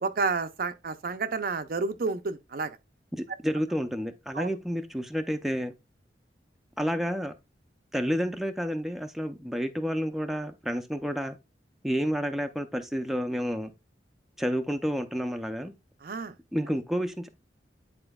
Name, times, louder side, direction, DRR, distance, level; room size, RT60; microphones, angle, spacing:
voice 1, 0.0-2.7 4.3-4.5 16.0-16.3, right 4 dB, 55° right, 0.5 m, -30 dB
voice 2, 3.1-5.7 6.8-7.3 7.9-11.4 11.8-13.7 14.4-15.7 16.5-17.3, equal, ahead, 0.5 m, -30 dB
9.9 x 4.3 x 2.3 m
head